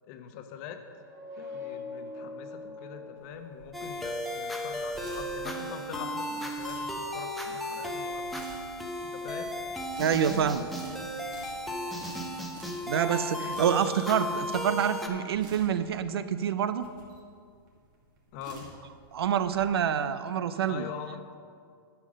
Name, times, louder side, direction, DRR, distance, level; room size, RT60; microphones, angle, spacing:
voice 1, 0.0-0.8 1.4-8.4 9.0-9.5 18.3-18.7 20.7-21.4, left 7 dB, 45° left, 7 dB, 1.0 m, -43 dB
sound 1, 0.9-4.4, left 4 dB, 20° right, 1.9 m, -43 dB
sound 2, 3.2-19.6, right 3 dB, 55° right, 2.3 m, -51 dB
sound 3, 3.7-15.1, left 1 dB, ahead, 0.8 m, -35 dB
voice 2, 10.0-10.7 12.8-16.9 19.1-20.9, right 8 dB, 85° right, 12 dB, 0.6 m, -27 dB
11.5 x 5.8 x 6.3 m, 2.2 s
hypercardioid pair, 140°, 13 cm